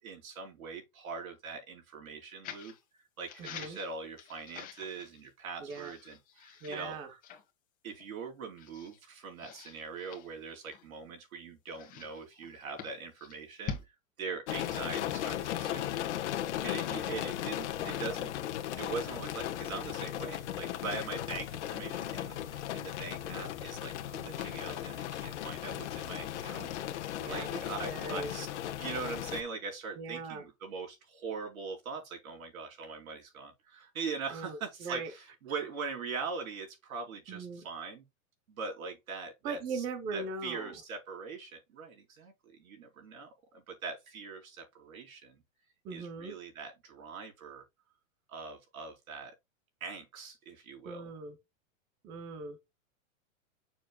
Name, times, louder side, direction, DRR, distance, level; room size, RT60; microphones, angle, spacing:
voice 1, 0.0-7.0 7.8-15.9 16.6-18.3 18.8-27.0 27.3-28.5 28.8-38.0 38.5-39.8 40.1-43.3 43.5-45.4 45.9-47.6 48.3-49.3 49.8-51.1, right 4 dB, 85° right, 4.1 m, -42 dB
sound 1, 2.4-2.8 3.3-5.3 5.7-7.0 7.2-7.4 8.0-8.1 8.6-9.0 9.4-11.1 11.7-13.9, left 7 dB, 20° left, 1.6 m, -46 dB
voice 2, 5.6-6.0 6.6-7.1 17.7-18.0 27.2-27.6 27.9-28.3 30.0-30.4 34.3-35.1 37.3-37.6 39.4-40.7 45.8-46.3 50.8-51.4 52.0-52.6, right 4 dB, 10° right, 0.5 m, -39 dB
sound 2, 14.5-29.4, left 11 dB, 55° left, 1.3 m, -36 dB
7.1 x 6.9 x 2.2 m
supercardioid pair, 165°, 41 cm